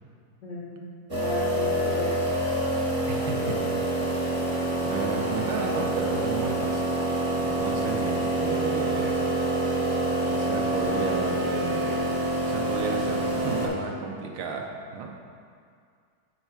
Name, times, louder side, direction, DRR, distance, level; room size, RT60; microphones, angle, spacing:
voice 1, 0.4-2.2, left 2 dB, 90° left, -4 dB, 0.6 m, -35 dB
sound 1, 1.1-13.7, right 1 dB, 25° right, 0.5 m, -27 dB
voice 2, 3.1-4.6 4.8-7.1 7.4-9.2 10.2-12.1 12.4-15.1, right 4 dB, 75° right, 1 dB, 1.3 m, -33 dB
5.5 x 4.7 x 4.5 m, 2.2 s
omnidirectional pair, 2.1 m